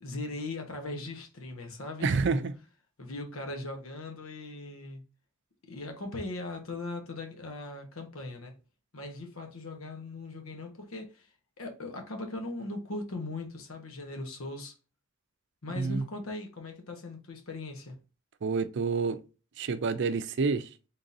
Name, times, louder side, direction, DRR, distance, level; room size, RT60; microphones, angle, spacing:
voice 1, 0.0-2.4 3.0-5.0 5.7-8.6 8.9-11.3 11.6-14.7 15.6-18.0, left 2 dB, 90° left, 1.2 m, -39 dB
voice 2, 2.0-2.5 15.8-16.0 18.4-19.2 19.6-20.7, right 4 dB, 60° right, 0.5 m, -28 dB
3.9 x 3.8 x 2.7 m
head